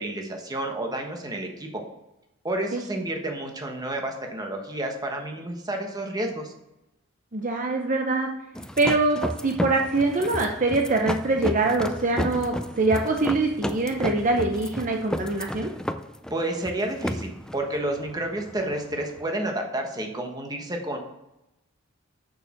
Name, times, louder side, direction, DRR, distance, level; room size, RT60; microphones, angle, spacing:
voice 1, 0.0-1.8 2.4-6.5 16.3-21.0, right 1 dB, 20° right, 2 dB, 1.2 m, -30 dB
voice 2, 7.3-8.3 8.8-15.7, right 2 dB, 40° right, 3 dB, 0.7 m, -24 dB
sound 1, 8.5-19.2, equal, 5° left, 0.4 m, -33 dB
6.6 x 6.4 x 5.9 m, 0.91 s
head